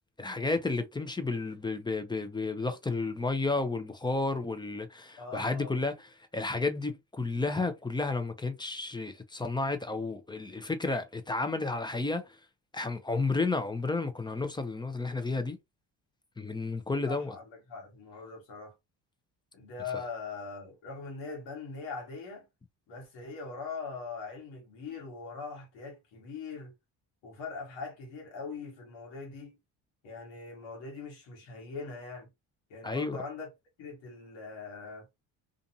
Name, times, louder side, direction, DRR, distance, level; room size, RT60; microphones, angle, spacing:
voice 1, 0.2-6.0 6.3-12.3 12.7-15.6 16.4-17.3 32.8-33.2, left 3 dB, 10° left, 0.6 m, -32 dB
voice 2, 5.2-5.8 17.0-18.7 19.5-22.5 22.9-26.7 27.2-29.6 30.0-32.3 32.7-33.5 33.8-35.1, left 4 dB, 80° left, 1.6 m, -41 dB
2.5 x 2.5 x 2.8 m
supercardioid pair, 70°, 43 cm